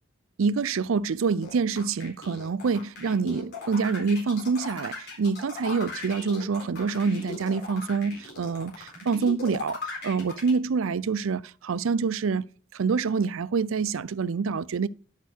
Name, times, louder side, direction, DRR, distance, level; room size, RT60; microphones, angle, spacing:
voice 1, 0.4-12.4 12.7-14.9, right 5 dB, 80° right, 0.5 m, -26 dB
sound 1, 1.4-10.5, left 3 dB, 55° left, 3.9 m, -38 dB
10.0 x 6.6 x 4.5 m
head